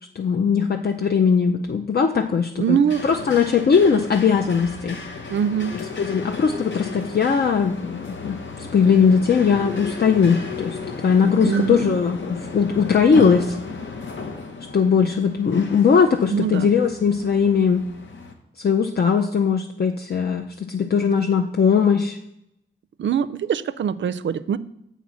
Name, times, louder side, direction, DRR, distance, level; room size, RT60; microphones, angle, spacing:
voice 1, 0.2-2.8 3.0-5.0 5.7-10.8 11.0-13.6 14.7-17.8 18.6-22.2, left 6 dB, 50° left, 4 dB, 0.5 m, -19 dB
voice 2, 2.6-3.0 5.3-5.8 11.4-12.0 16.3-16.7 23.0-24.6, right 8 dB, 65° right, 14 dB, 0.4 m, -23 dB
sound 1, 2.9-18.3, left 4 dB, 65° left, 1.0 m, -34 dB
7.2 x 4.0 x 6.2 m, 0.79 s
cardioid pair, 50°, 21 cm